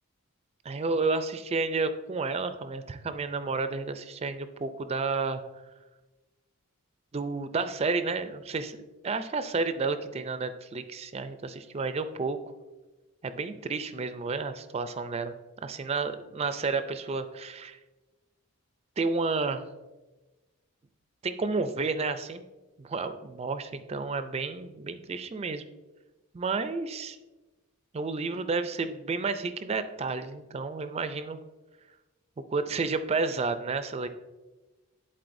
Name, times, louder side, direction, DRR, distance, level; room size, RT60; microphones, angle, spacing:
voice 1, 0.7-5.4 7.1-8.8 9.0-12.4 13.2-15.3 15.6-17.8 19.0-19.6 21.2-22.4 22.8-25.6 26.3-27.2 27.9-31.4 32.5-34.1, right 4 dB, 30° right, 11 dB, 0.4 m, -31 dB
11.0 x 4.3 x 2.6 m, 1.2 s
head